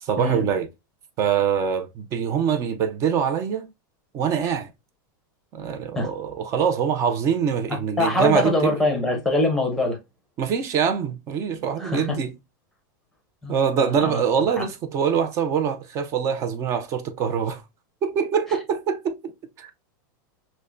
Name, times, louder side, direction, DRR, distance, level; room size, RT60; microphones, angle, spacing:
voice 1, 0.0-0.7 1.2-3.7 4.1-4.7 5.5-8.7 10.4-12.3 13.5-17.6 18.0-19.3 19.6-19.7, right 7 dB, 25° right, 0.5 m, -24 dB
voice 2, 7.7-10.0 11.8-12.2 13.4-14.2 14.6-14.7, left 2 dB, 5° left, 0.8 m, -24 dB
5.4 x 2.1 x 2.5 m
supercardioid pair, 165°, 11 cm